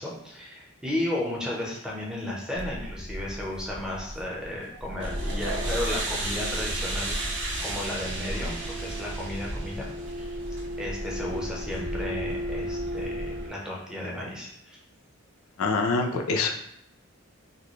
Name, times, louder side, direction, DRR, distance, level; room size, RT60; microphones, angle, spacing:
voice 1, 0.0-7.1 7.6-9.9 10.1-10.4 10.8-14.8, left 1 dB, 5° right, -3 dB, 0.7 m, -34 dB
sound 1, 2.5-5.4 5.7-13.4, equal, 35° left, 0.7 m, -40 dB
sound 2, 5.0-13.5, right 1 dB, 60° right, 0.9 m, -32 dB
voice 2, 15.6-16.5, left 3 dB, 80° left, 4 dB, 0.4 m, -25 dB
4.1 x 2.2 x 3.1 m, 0.76 s
head